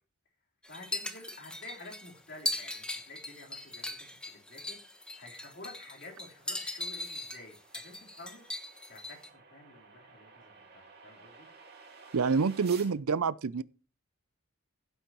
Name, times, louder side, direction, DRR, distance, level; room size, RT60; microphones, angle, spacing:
voice 1, 0.6-4.0 4.3-8.4 8.9-11.5 12.3-12.7, left 2 dB, 50° left, 3.8 m, -50 dB
sound 1, 0.6-9.3, left 2 dB, 5° left, 1.1 m, -39 dB
sound 2, 4.3-12.9, right 5 dB, 45° right, 2.6 m, -55 dB
voice 2, 12.1-13.6, right 5 dB, 80° right, 0.5 m, -27 dB
16.0 x 9.1 x 3.0 m
head